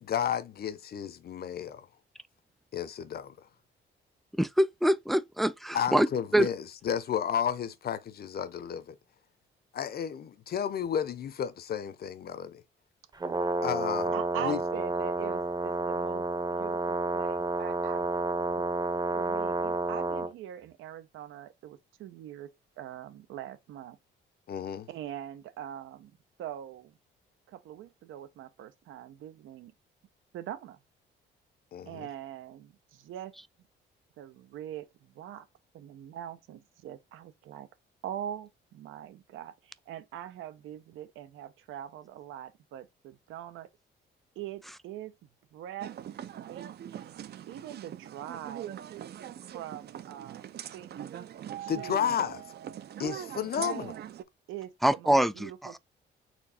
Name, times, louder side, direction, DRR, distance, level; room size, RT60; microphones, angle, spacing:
voice 1, 0.0-1.9 2.7-3.5 5.7-9.0 9.7-12.6 13.6-14.1 14.4-14.6 24.5-24.9 31.7-32.1 51.7-52.4 53.0-53.9, left 8 dB, 50° left, 0.7 m, -32 dB
voice 2, 4.4-6.1 6.3-6.5 54.8-55.8, right 1 dB, ahead, 0.4 m, -25 dB
Brass instrument, 13.1-20.3, right 3 dB, 20° right, 0.7 m, -30 dB
voice 3, 14.1-16.2 16.5-18.2 18.5-18.7 19.1-22.5 22.8-24.0 24.9-26.1 26.4-26.9 27.5-29.7 30.3-30.8 31.9-33.3 34.2-35.5 35.7-37.7 38.0-43.7 44.4-45.1 45.5-45.9 46.5-46.7 46.9-48.7 49.5-51.0 51.6-52.4 53.5-54.1 54.5-55.8, right 11 dB, 85° right, 0.7 m, -42 dB
sound 1, 45.8-54.2, right 10 dB, 55° right, 0.5 m, -42 dB
4.4 x 2.7 x 4.2 m
cardioid pair, 90°, 20 cm